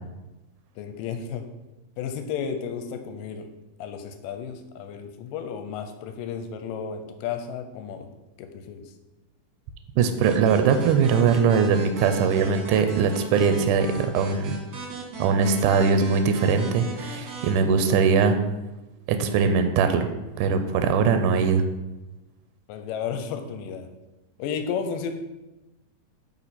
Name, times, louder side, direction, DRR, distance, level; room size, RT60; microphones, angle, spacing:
voice 1, 0.8-1.5 2.0-3.5 3.8-8.1 8.4-8.9 22.7-23.9 24.4-25.1, left 7 dB, 90° left, 7 dB, 2.3 m, -33 dB
voice 2, 10.0-14.6 15.2-18.4 19.1-20.1 20.4-21.6, right 6 dB, 80° right, 8 dB, 2.0 m, -21 dB
sound 1, 10.2-17.5, right 4 dB, 45° right, 1.9 m, -38 dB
8.9 x 4.4 x 4.2 m, 1.0 s
omnidirectional pair, 3.8 m